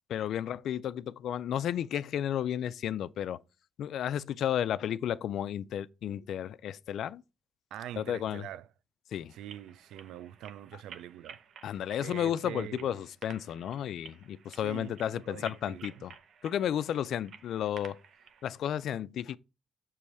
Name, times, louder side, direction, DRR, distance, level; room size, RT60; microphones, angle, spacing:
voice 1, 0.0-3.4 3.8-7.2 8.0-8.4 9.1-9.3 11.6-16.1 16.4-18.0 18.4-19.4, left 10 dB, 70° left, 0.3 m, -33 dB
voice 2, 7.7-8.7 9.3-11.4 12.0-13.0 14.5-16.1, right 11 dB, 85° right, 0.4 m, -44 dB
sound 1, 9.3-18.4, right 7 dB, 65° right, 0.7 m, -53 dB
6.8 x 3.1 x 4.7 m
cardioid pair, 90°, 0 cm